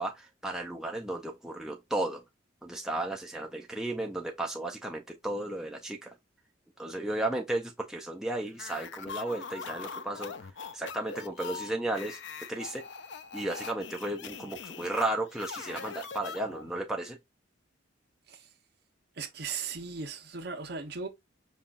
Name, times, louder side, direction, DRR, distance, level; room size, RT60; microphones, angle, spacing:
voice 1, 0.0-2.2 2.6-6.1 6.8-12.2 12.5-12.8 13.3-17.2, right 1 dB, 5° right, 0.4 m, -34 dB
sound 1, 8.5-16.8, left 5 dB, 60° left, 0.4 m, -42 dB
voice 2, 19.2-21.1, right 5 dB, 55° right, 0.7 m, -37 dB
5.4 x 2.3 x 2.4 m
head